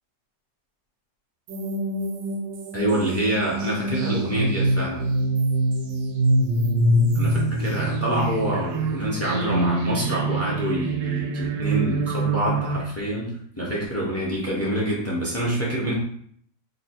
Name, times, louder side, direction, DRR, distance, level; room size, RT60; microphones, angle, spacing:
sound 1, 1.5-12.8, right 1 dB, 85° right, 1.3 m, -24 dB
voice 1, 2.7-5.1 7.1-15.9, right 1 dB, 20° left, -5 dB, 0.4 m, -26 dB
2.9 x 2.7 x 4.4 m, 0.64 s
omnidirectional pair, 1.9 m